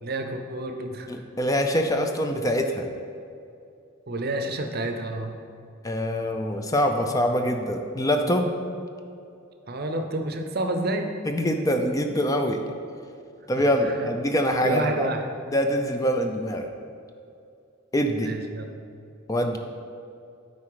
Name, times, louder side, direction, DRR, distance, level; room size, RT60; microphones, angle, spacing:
voice 1, 0.0-1.2 4.1-5.4 9.7-11.1 13.6-14.1 14.6-15.2 18.2-18.7, right 2 dB, 50° right, 5 dB, 0.6 m, -29 dB
voice 2, 1.1-2.9 5.8-8.5 11.3-12.6 13.5-15.1 15.5-16.7 17.9-18.3 19.3-19.6, equal, 15° left, 5 dB, 0.4 m, -24 dB
9.6 x 4.2 x 4.8 m, 2.5 s
head